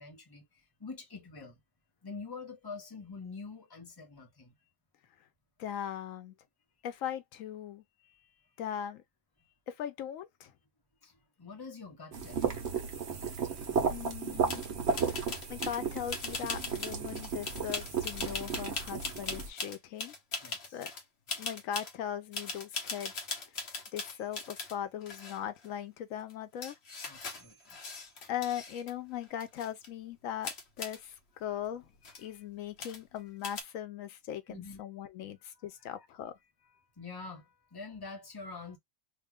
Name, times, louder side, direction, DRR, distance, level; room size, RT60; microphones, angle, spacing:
voice 1, 0.0-1.6 2.0-4.5 8.0-8.5 9.4-9.5 11.0-12.6 20.4-20.8 27.0-27.8 30.9-31.0 31.4-31.6 32.0-32.4 34.5-34.8 35.6-36.1 37.0-38.8, left 4 dB, 20° left, 0.9 m, -46 dB
voice 2, 5.6-6.3 6.8-7.8 8.6-9.0 9.7-10.5 13.9-14.6 15.0-20.1 20.7-20.9 21.4-23.1 23.9-26.7 28.3-31.9 32.2-36.3, left 10 dB, 90° left, 1.0 m, -39 dB
sound 1, 12.1-19.5, right 6 dB, 60° right, 1.1 m, -34 dB
sound 2, 14.5-14.7 14.9-15.8 16.1-21.0 21.3-21.9 22.3-24.8 25.0-25.7 26.3-26.4 26.6-28.9 29.2-29.9 30.4-31.0 31.6-31.7 32.0-32.3 32.8-33.2 33.4-33.6, left 4 dB, 55° left, 1.1 m, -40 dB
3.0 x 2.4 x 3.5 m
omnidirectional pair, 1.3 m